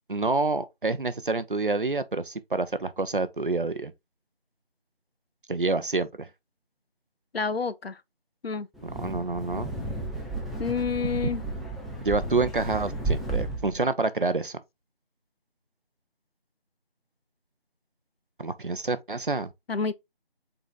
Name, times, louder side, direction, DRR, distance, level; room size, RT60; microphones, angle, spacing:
voice 1, 0.1-3.9 5.5-6.3 8.8-9.7 12.0-14.6 18.4-19.5, right 3 dB, 55° right, 0.6 m, -28 dB
voice 2, 7.3-8.0 8.4-8.7 10.6-11.4 19.7-19.9, left 5 dB, 75° left, 0.6 m, -28 dB
Wind, 8.7-13.8, right 2 dB, ahead, 0.5 m, -33 dB
3.9 x 3.5 x 3.8 m
figure-of-eight pair, 175°, 31 cm